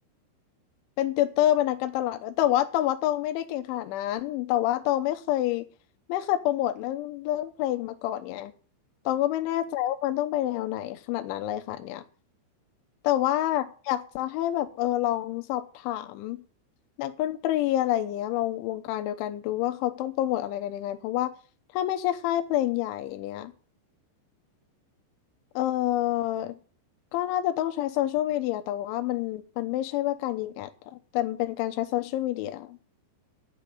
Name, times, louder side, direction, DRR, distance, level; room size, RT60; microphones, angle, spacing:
voice 1, 1.0-5.7 6.1-8.5 9.1-12.0 13.0-16.4 17.0-21.3 21.7-23.5 25.6-26.6 27.1-32.8, left 13 dB, 80° left, 8 dB, 3.4 m, -28 dB
10.5 x 9.0 x 6.7 m, 0.39 s
omnidirectional pair, 5.5 m